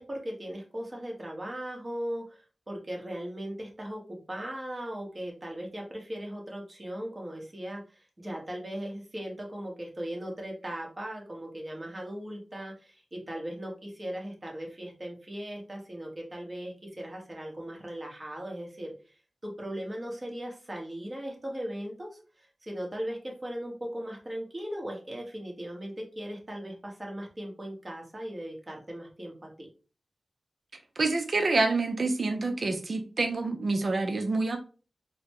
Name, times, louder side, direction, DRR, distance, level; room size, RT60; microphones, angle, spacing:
voice 1, 0.0-2.4 2.7-18.9 19.4-29.7, equal, 30° right, -1 dB, 1.2 m, -38 dB
voice 2, 31.0-34.6, right 3 dB, 60° right, 5 dB, 0.5 m, -27 dB
4.0 x 2.1 x 3.0 m, 0.36 s
wide cardioid pair, 85°, 0 cm